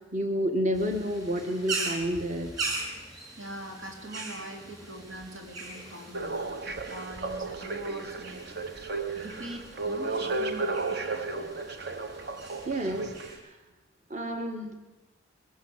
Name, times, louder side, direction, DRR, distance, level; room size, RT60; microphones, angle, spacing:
voice 1, 0.0-2.5 12.7-13.6 14.1-14.8, equal, 40° right, 6 dB, 1.7 m, -30 dB
sound 1, 0.7-13.4, right 3 dB, 20° right, 5.7 m, -40 dB
voice 2, 3.4-8.4 9.1-11.5, right 1 dB, 80° right, 2 dB, 3.9 m, -43 dB
sound 2, 6.1-13.4, right 3 dB, 55° right, 1.3 m, -34 dB
22.5 x 15.5 x 8.2 m, 1.1 s
head